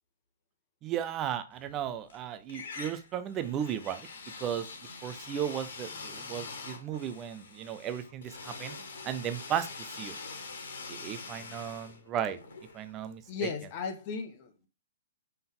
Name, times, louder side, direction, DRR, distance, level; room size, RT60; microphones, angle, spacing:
voice 1, 0.8-4.1 4.4-4.7 5.0-8.7 9.0-10.2 10.9-12.4 12.7-13.5, right 9 dB, 25° right, 0.8 m, -35 dB
sound 1, 1.6-2.2 2.5-13.4, left 4 dB, 60° left, 1.8 m, -44 dB
voice 2, 13.3-14.7, left 5 dB, 35° left, 1.3 m, -36 dB
5.8 x 5.5 x 3.8 m
figure-of-eight pair, 115°, 0 cm